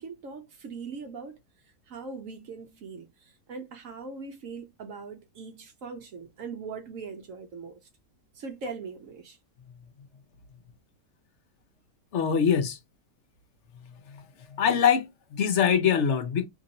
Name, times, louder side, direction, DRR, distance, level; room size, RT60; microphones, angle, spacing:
voice 1, 0.0-1.4 1.9-7.7 8.4-9.4, right 4 dB, 65° right, 1.0 m, -40 dB
voice 2, 12.1-12.8 14.6-16.5, left 7 dB, 55° left, 0.9 m, -23 dB
2.9 x 2.6 x 4.0 m
omnidirectional pair, 1.6 m